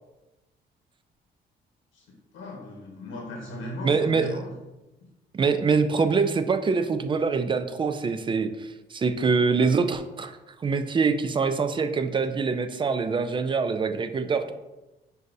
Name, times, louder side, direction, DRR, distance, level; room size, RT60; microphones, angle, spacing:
voice 1, 2.3-4.6 5.0-5.1, left 1 dB, 80° left, -1 dB, 1.0 m, -37 dB
voice 2, 3.8-4.3 5.3-10.4 10.6-14.5, right 5 dB, 25° right, 9 dB, 0.3 m, -24 dB
6.3 x 2.6 x 2.5 m, 1.0 s
cardioid pair, 90°, 20 cm